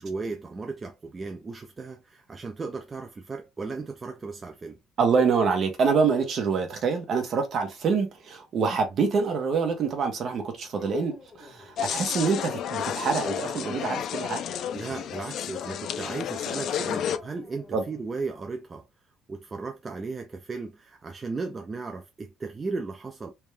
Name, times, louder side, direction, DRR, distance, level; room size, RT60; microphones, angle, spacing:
voice 1, 0.0-4.8 14.7-18.9 19.3-23.3, right 4 dB, 20° right, 0.4 m, -36 dB
voice 2, 5.0-14.4 17.7-17.8, right 5 dB, 40° right, 1.3 m, -26 dB
sound 1, 10.7-11.8 13.1-14.0 17.0-18.1, left 5 dB, 10° left, 1.9 m, -41 dB
sound 2, 11.8-17.2, left 9 dB, 50° left, 0.4 m, -31 dB
3.4 x 3.0 x 3.3 m
cardioid pair, 160°, 0 cm